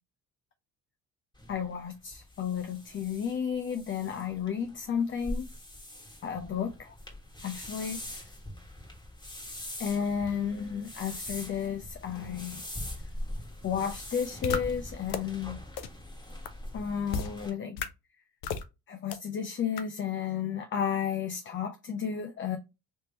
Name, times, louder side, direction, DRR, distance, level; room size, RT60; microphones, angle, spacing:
sound 1, 1.3-17.5, left 1 dB, 10° left, 1.4 m, -42 dB
voice 1, 1.5-5.5 6.2-7.0 7.4-8.0 9.8-12.6 13.6-15.6 16.7-17.8 18.9-22.6, left 7 dB, 30° left, 0.5 m, -32 dB
sound 2, 14.4-14.6 15.1-15.2 15.8-15.9 16.5-16.6 17.1-17.3 17.8-17.9 18.4-18.6 19.1-19.2 19.8-19.9, left 6 dB, 75° left, 0.7 m, -31 dB
3.5 x 2.9 x 2.8 m
supercardioid pair, 70°, 39 cm